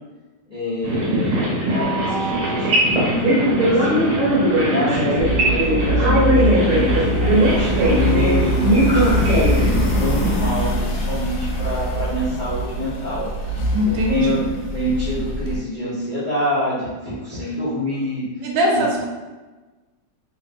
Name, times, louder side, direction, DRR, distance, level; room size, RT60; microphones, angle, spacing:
voice 1, 0.5-1.4 1.7-4.2 4.6-7.1 7.5-13.6 14.1-14.4 14.7-18.2 18.7-18.8, left 1 dB, 40° left, -13 dB, 0.7 m, -26 dB
sound 1, 0.8-10.4, right 1 dB, 70° right, 1.6 m, -19 dB
sound 2, 5.2-15.6, equal, 80° left, 1.3 m, -23 dB
voice 2, 7.7-8.2 13.7-14.4 18.4-19.1, equal, 85° right, -1 dB, 1.4 m, -21 dB
3.2 x 2.6 x 2.4 m, 1.2 s
omnidirectional pair, 2.1 m